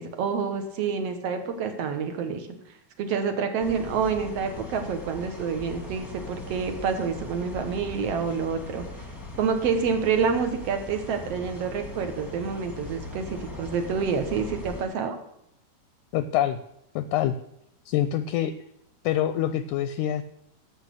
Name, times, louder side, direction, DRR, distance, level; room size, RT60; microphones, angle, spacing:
voice 1, 0.0-2.5 3.0-8.8 9.4-15.2, right 6 dB, 60° right, 7 dB, 1.9 m, -28 dB
sound 1, 3.6-14.8, left 2 dB, 10° left, 0.9 m, -40 dB
voice 2, 16.1-16.6 16.9-17.3 17.9-18.5 19.0-20.2, left 11 dB, 80° left, 12 dB, 1.8 m, -25 dB
11.5 x 7.2 x 6.6 m, 0.76 s
omnidirectional pair, 3.8 m